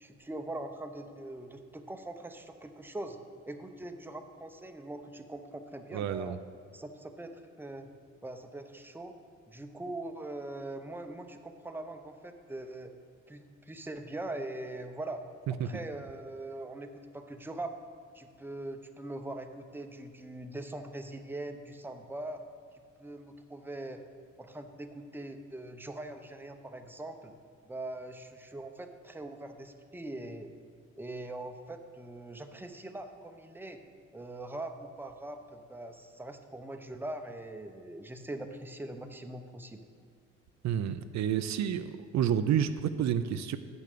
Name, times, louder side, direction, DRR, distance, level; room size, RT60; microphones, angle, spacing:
voice 1, 0.0-3.2 3.5-6.4 6.7-7.3 7.6-7.9 8.2-9.1 9.5-12.9 13.3-15.2 15.6-17.7 18.1-22.4 23.0-24.0 24.4-27.3 27.7-30.5 31.0-33.8 34.1-39.8, right 2 dB, 5° right, 6 dB, 0.7 m, -42 dB
voice 2, 5.9-6.4 15.6-15.7 40.6-43.6, right 9 dB, 65° right, 11 dB, 0.5 m, -29 dB
8.1 x 6.8 x 6.7 m, 2.1 s
cardioid pair, 90°, 30 cm